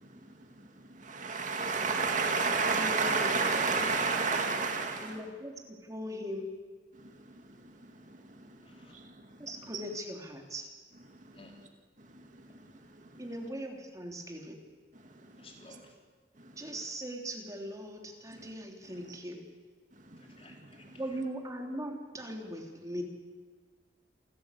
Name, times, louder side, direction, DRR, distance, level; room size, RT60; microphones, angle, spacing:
voice 1, 0.9-5.2 7.0-7.1 7.6-7.7 8.1-8.6 8.9-9.1 9.7-9.8 12.5-12.7 13.1-13.2 15.3-15.4 18.4-18.5 19.1-19.2 20.1-20.9, right 4 dB, 45° right, 2.3 m, -31 dB
voice 2, 2.4-3.3 5.0-6.5 9.4-10.7 13.2-14.6 16.6-19.4 21.0-23.0, equal, 20° right, 3.4 m, -40 dB
voice 3, 8.6-9.0 11.3-11.6 15.4-16.0 20.2-21.2, left 2 dB, 35° left, 4.2 m, -56 dB
28.0 x 15.5 x 8.4 m
head